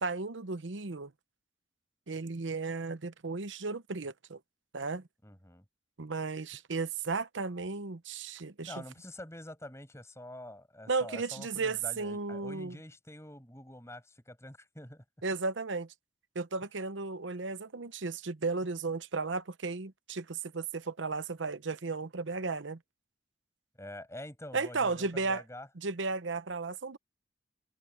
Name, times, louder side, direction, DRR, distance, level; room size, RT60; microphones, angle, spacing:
voice 1, 0.0-1.1 2.1-4.4 4.7-5.0 6.0-8.7 10.9-12.8 15.2-15.9 16.3-22.8 24.5-25.4 25.8-27.0, right 4 dB, 75° right, 0.8 m, -34 dB
voice 2, 5.2-5.6 8.6-15.0 23.8-25.7, left 1 dB, 15° left, 6.4 m, -46 dB
head